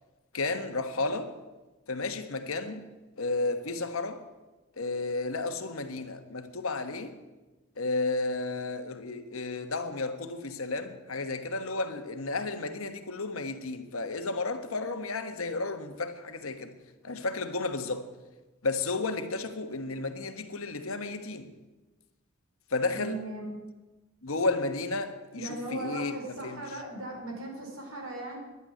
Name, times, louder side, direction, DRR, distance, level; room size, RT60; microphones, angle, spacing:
voice 1, 0.3-1.3 1.9-2.8 3.2-4.2 4.8-7.1 7.8-16.7 17.0-18.1 18.6-21.5 22.7-23.2 24.2-26.1 26.4-26.6, left 3 dB, 75° left, 1.4 m, -32 dB
voice 2, 22.9-23.6 25.4-28.4, right 2 dB, 70° right, 4.6 m, -38 dB
11.0 x 9.2 x 9.7 m
head